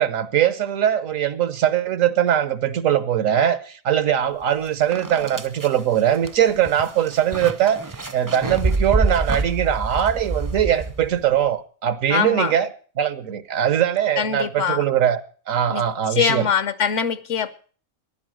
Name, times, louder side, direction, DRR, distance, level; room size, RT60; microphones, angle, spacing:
voice 1, 0.0-7.8 8.1-12.7 13.0-15.2 15.5-16.5, right 10 dB, 80° right, 1.3 m, -21 dB
sound 1, 4.4-4.5 4.9-11.3, right 3 dB, 25° right, 0.5 m, -27 dB
voice 2, 12.1-12.5 14.2-14.9 15.7-15.8 16.1-17.5, left 7 dB, 70° left, 1.2 m, -23 dB
15.5 x 11.0 x 6.2 m
omnidirectional pair, 1.4 m